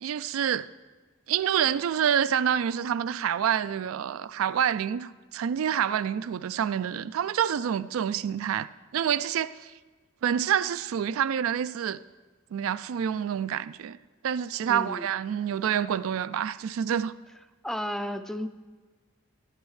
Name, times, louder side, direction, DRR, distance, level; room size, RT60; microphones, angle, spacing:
voice 1, 0.0-0.7 1.3-9.7 10.2-12.0 12.5-14.0 14.2-17.1, right 8 dB, 75° right, 0.3 m, -27 dB
voice 2, 14.7-15.1 17.6-18.5, equal, ahead, 0.4 m, -33 dB
13.5 x 11.5 x 3.2 m
head